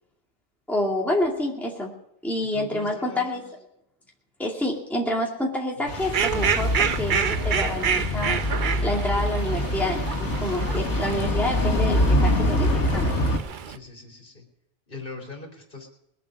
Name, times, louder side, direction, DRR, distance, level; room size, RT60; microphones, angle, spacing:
voice 1, 0.7-1.9 2.2-3.4 4.4-8.4 8.8-13.1, left 1 dB, ahead, -2 dB, 2.3 m, -28 dB
voice 2, 2.5-3.4 5.8-6.1 13.7-14.4 14.9-15.9, left 2 dB, 50° left, 2 dB, 3.7 m, -41 dB
sound 1, 5.9-13.4, left 1 dB, 75° left, 1.8 m, -25 dB
Fowl, 6.0-13.8, right 7 dB, 50° right, 0.8 m, -29 dB
21.0 x 8.3 x 6.4 m, 0.82 s
omnidirectional pair, 1.2 m